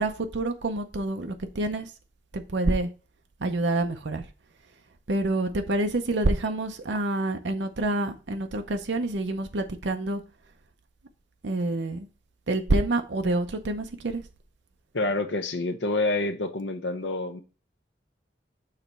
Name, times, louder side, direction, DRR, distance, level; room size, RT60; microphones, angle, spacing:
voice 1, 0.0-1.9 2.3-2.9 3.4-4.2 5.1-10.2 11.4-12.1 12.5-14.2, right 2 dB, 70° right, 0.7 m, -27 dB
voice 2, 14.9-17.4, left 2 dB, 70° left, 0.9 m, -27 dB
6.6 x 3.0 x 5.3 m
head